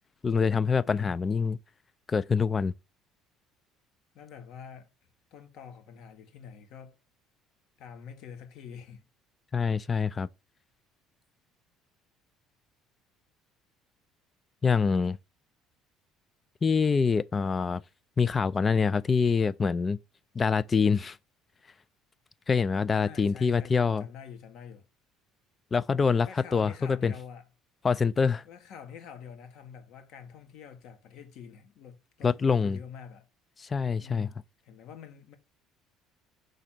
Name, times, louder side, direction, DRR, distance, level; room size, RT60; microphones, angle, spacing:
voice 1, 0.2-1.6 2.1-2.7 9.5-10.3 14.6-15.2 16.6-17.8 18.2-20.0 20.4-21.2 22.5-24.0 25.7-27.1 27.8-28.4 32.2-32.8 33.6-34.3, left 5 dB, 25° left, 0.3 m, -25 dB
voice 2, 0.9-1.2 4.1-4.9 5.3-7.0 7.8-9.0 22.9-24.9 26.2-27.5 28.4-33.3 34.0-35.4, left 7 dB, 70° left, 1.5 m, -46 dB
5.1 x 3.9 x 5.9 m
cardioid pair, 110°, 0 cm